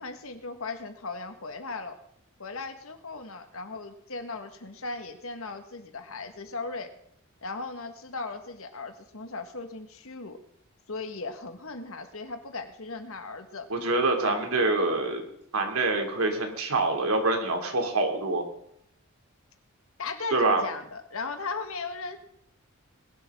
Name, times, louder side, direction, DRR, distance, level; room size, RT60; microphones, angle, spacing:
voice 1, 0.0-2.0 2.4-6.9 7.4-10.4 10.9-13.7 14.2-14.5 20.0-22.2, left 3 dB, 70° left, 7 dB, 1.6 m, -37 dB
voice 2, 13.7-15.2 15.5-18.4 20.3-20.6, right 2 dB, 85° right, 3 dB, 2.7 m, -25 dB
20.5 x 11.5 x 3.7 m, 0.72 s
head